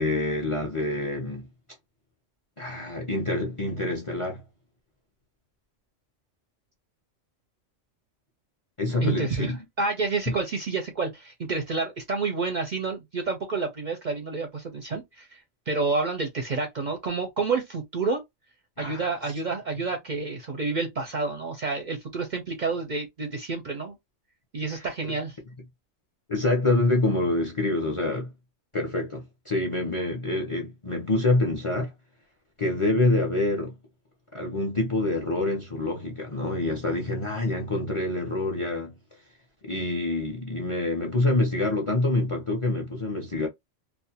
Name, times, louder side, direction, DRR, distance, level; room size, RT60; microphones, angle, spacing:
voice 1, 0.0-1.5 2.6-4.4 8.8-9.6 10.3-10.4 18.8-19.1 26.3-28.3 28.7-31.9 32.6-33.7 34.3-38.9 39.6-43.5, left 2 dB, 35° left, 0.5 m, -26 dB
voice 2, 9.0-18.2 18.8-24.0 24.5-25.4, right 4 dB, 55° right, 0.6 m, -29 dB
2.4 x 2.1 x 2.7 m
omnidirectional pair, 1.2 m